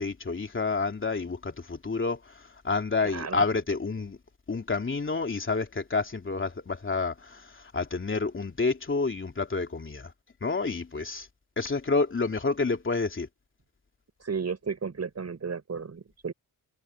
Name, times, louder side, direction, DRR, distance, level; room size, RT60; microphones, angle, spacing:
voice 1, 0.0-4.2 4.5-10.1 10.4-11.3 11.6-13.3, left 4 dB, 35° left, 3.1 m, -29 dB
voice 2, 3.0-3.5 14.2-16.3, right 5 dB, 45° right, 6.1 m, -33 dB
cardioid pair, 85°, 36 cm